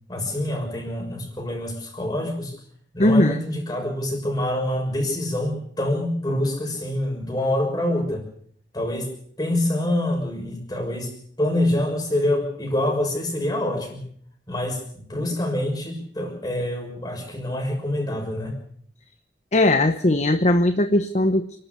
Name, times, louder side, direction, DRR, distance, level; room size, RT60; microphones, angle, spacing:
voice 1, 0.1-2.6 2.9-8.2 8.7-9.1 9.4-11.1 11.4-14.0 14.5-18.5, left 1 dB, 20° left, 2 dB, 6.3 m, -26 dB
voice 2, 3.0-3.4 19.5-21.6, left 1 dB, 40° left, 10 dB, 1.0 m, -19 dB
28.5 x 12.5 x 8.3 m, 0.63 s
head